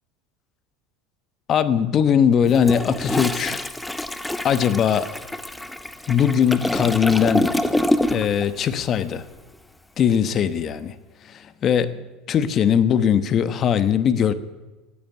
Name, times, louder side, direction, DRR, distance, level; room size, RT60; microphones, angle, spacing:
voice 1, 1.5-3.7 4.4-5.1 6.1-7.5 8.1-9.2 10.0-11.0 11.2-14.3, left 8 dB, 35° left, 13 dB, 1.1 m, -20 dB
Toilet flush, 2.5-8.4 8.7-9.0, left 1 dB, 5° left, 0.8 m, -26 dB
15.5 x 9.4 x 9.5 m, 1.2 s
supercardioid pair, 125°, 0 cm